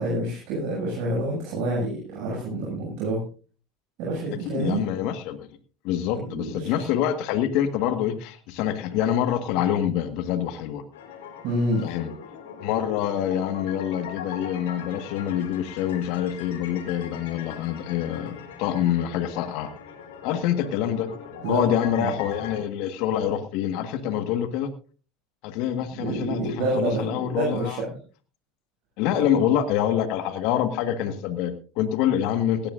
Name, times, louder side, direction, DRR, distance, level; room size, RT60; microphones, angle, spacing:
voice 1, 0.0-3.2 4.0-4.8 6.1-6.8 11.4-11.9 21.4-22.1 26.0-27.9, right 1 dB, 60° right, -2 dB, 6.7 m, -28 dB
voice 2, 4.4-5.5 5.8-10.8 11.8-12.1 12.6-19.7 20.2-21.1 21.5-24.7 25.4-27.8 29.0-32.7, left 10 dB, 65° left, 9 dB, 1.6 m, -26 dB
sound 1, 10.9-22.6, left 7 dB, 80° left, 3.1 m, -40 dB
17.5 x 17.0 x 2.6 m, 0.37 s
hypercardioid pair, 85°, 0 cm